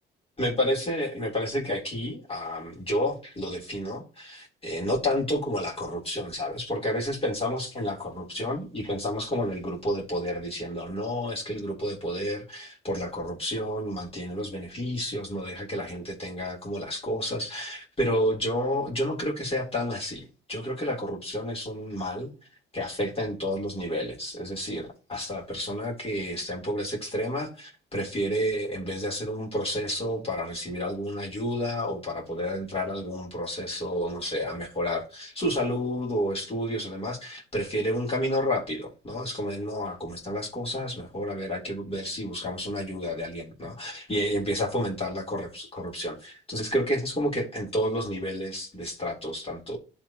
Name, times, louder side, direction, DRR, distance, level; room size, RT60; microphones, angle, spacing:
voice 1, 0.4-22.3 22.7-49.8, equal, 30° left, 3.6 m, -30 dB
12.0 x 4.1 x 3.0 m
cardioid pair, 90°, 20 cm